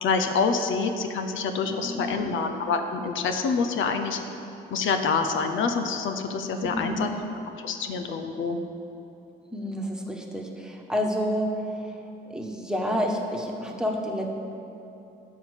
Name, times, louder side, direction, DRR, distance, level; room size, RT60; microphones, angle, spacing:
voice 1, 0.0-4.2 4.7-7.1 7.6-8.6, left 5 dB, 70° left, 6 dB, 0.9 m, -26 dB
voice 2, 1.8-2.3 6.7-7.1 9.5-12.0 12.3-14.3, equal, 5° right, 1 dB, 1.5 m, -29 dB
11.5 x 5.5 x 8.3 m, 3.0 s
cardioid pair, 85°, 21 cm